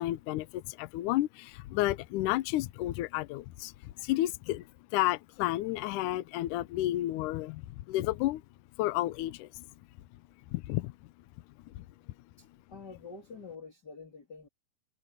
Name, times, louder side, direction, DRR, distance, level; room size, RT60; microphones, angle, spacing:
voice 1, 0.0-4.7 4.9-7.6 7.9-8.4 8.8-9.6 10.5-10.9 11.7-11.9, left 16 dB, 75° left, 2.0 m, -31 dB
voice 2, 12.4-14.5, left 4 dB, 25° left, 3.9 m, -47 dB
omnidirectional pair, 4.1 m